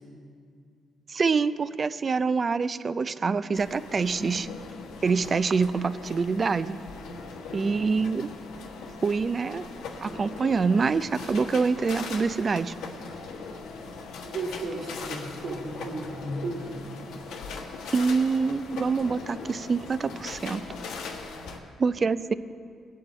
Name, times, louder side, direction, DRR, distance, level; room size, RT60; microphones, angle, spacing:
voice 1, 1.1-4.5 5.0-6.8 7.5-8.3 9.0-9.7 10.0-12.7 17.9-20.6 21.8-22.3, right 4 dB, 40° right, 14 dB, 0.4 m, -25 dB
sound 1, 3.5-21.6, left 4 dB, 85° left, 1.2 m, -40 dB
voice 2, 4.2-4.5 7.4-7.7 14.2-16.9 21.5-21.7, right 2 dB, 70° right, -3 dB, 2.3 m, -35 dB
19.0 x 8.4 x 4.3 m, 2.3 s
cardioid pair, 90°, 0 cm